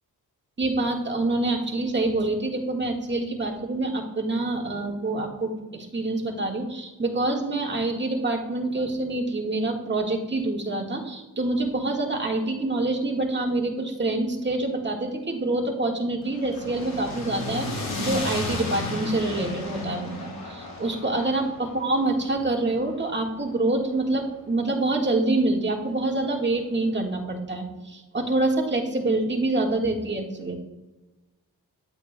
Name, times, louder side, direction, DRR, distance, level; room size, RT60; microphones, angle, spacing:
voice 1, 0.6-30.6, right 2 dB, 30° right, 1 dB, 1.6 m, -26 dB
sound 1, 16.2-24.5, left 2 dB, 70° left, 2.5 m, -34 dB
11.0 x 8.3 x 2.2 m, 1.1 s
cardioid pair, 55°, 39 cm